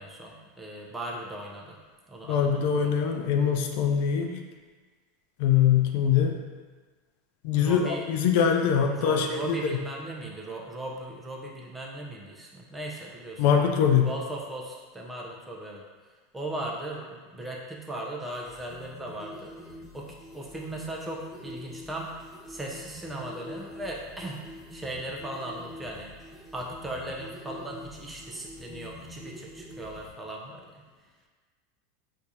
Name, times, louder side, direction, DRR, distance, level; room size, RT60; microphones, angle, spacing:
voice 1, 0.0-1.8 2.1-2.9 7.5-8.0 8.9-13.4 14.0-15.8 16.3-19.5 19.9-22.2 22.5-24.4 24.7-26.1 26.5-30.8, right 1 dB, 10° right, -2 dB, 0.7 m, -38 dB
voice 2, 2.3-4.4 5.4-6.4 7.4-9.8 13.4-14.1, left 8 dB, 65° left, 3 dB, 0.4 m, -23 dB
sound 1, 18.2-30.1, left 1 dB, 10° left, 1.3 m, -46 dB
4.4 x 2.6 x 2.8 m, 1.4 s
hypercardioid pair, 95°, 0 cm